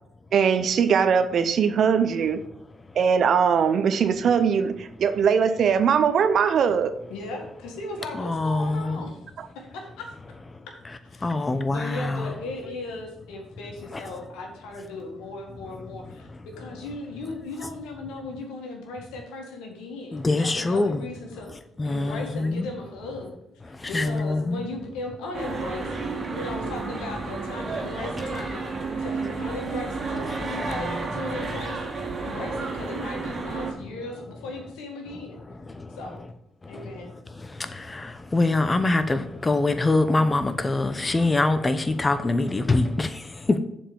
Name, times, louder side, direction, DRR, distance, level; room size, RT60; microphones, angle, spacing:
voice 1, 0.3-2.4 3.0-6.9 9.4-9.5, right 7 dB, 60° right, 0.7 m, -21 dB
voice 2, 7.1-9.2 9.6-10.1 11.0-11.3 11.7-16.3 16.6-21.5 21.8-23.4 23.7-28.6 29.0-31.8 32.2-35.4 36.0-36.2 36.7-37.1, left 2 dB, 75° left, 1.9 m, -37 dB
voice 3, 8.2-9.0 11.2-12.3 20.1-21.0 21.8-22.7 23.9-24.6 38.3-43.1, left 2 dB, 25° left, 0.9 m, -23 dB
sound 1, 25.3-33.7, right 3 dB, 40° right, 2.0 m, -31 dB
7.2 x 4.6 x 6.9 m
hypercardioid pair, 45°, 0 cm